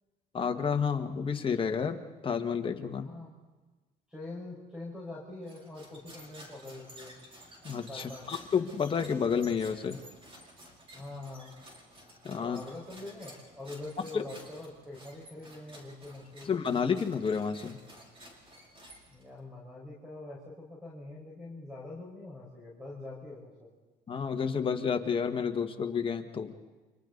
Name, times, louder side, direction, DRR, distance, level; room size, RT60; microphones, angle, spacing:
voice 1, 0.3-2.0 2.2-3.1 7.6-10.0 12.2-12.6 14.1-14.2 16.5-17.8 24.1-26.5, left 6 dB, 30° left, 5 dB, 1.7 m, -30 dB
voice 2, 3.0-3.3 4.1-7.2 7.9-8.2 10.9-11.5 12.4-16.5 19.1-23.7, left 2 dB, 5° right, -4 dB, 5.1 m, -44 dB
sound 1, 5.4-19.4, equal, 30° right, 5.0 m, -53 dB
29.5 x 25.5 x 4.0 m, 1.3 s
cardioid pair, 110°, 17 cm